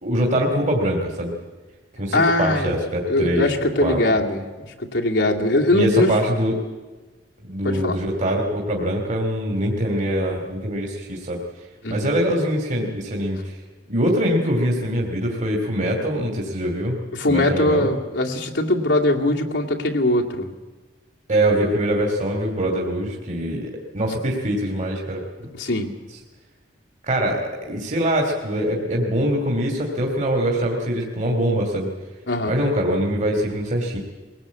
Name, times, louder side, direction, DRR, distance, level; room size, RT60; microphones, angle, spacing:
voice 1, 0.0-1.3 2.0-3.5 3.8-4.0 5.7-6.5 7.4-11.4 11.9-13.6 13.9-17.0 17.3-17.9 21.3-25.2 27.0-31.9 32.4-34.0, equal, 45° right, 1 dB, 2.7 m, -23 dB
voice 2, 2.1-2.7 3.1-4.4 4.8-6.1 7.6-8.0 11.8-12.1 17.1-20.5 25.5-25.9 32.3-32.5, left 1 dB, 80° left, 0 dB, 2.4 m, -21 dB
22.0 x 18.5 x 8.4 m, 1.2 s
head